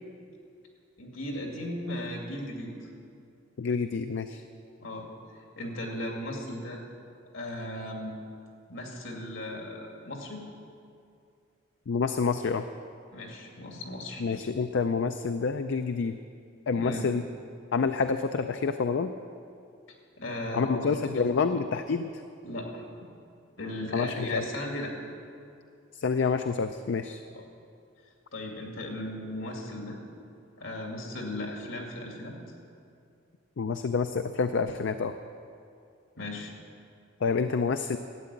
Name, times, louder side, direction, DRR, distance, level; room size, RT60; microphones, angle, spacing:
voice 1, 1.0-2.9 4.8-5.1 5.3-6.8 7.3-8.1 8.7-10.4 13.1-14.2 16.7-17.1 20.2-21.6 22.4-22.8 23.6-24.9 27.3-27.4 28.3-30.0 30.6-32.4 36.2-36.5, left 1 dB, 80° left, 1 dB, 2.5 m, -36 dB
voice 2, 3.6-4.4 11.9-12.6 14.2-16.2 16.7-17.2 17.7-19.1 20.5-22.1 23.9-24.4 26.0-27.2 33.6-35.1 37.2-38.0, left 5 dB, 65° left, 9 dB, 0.4 m, -28 dB
12.5 x 8.9 x 8.5 m, 2.4 s
head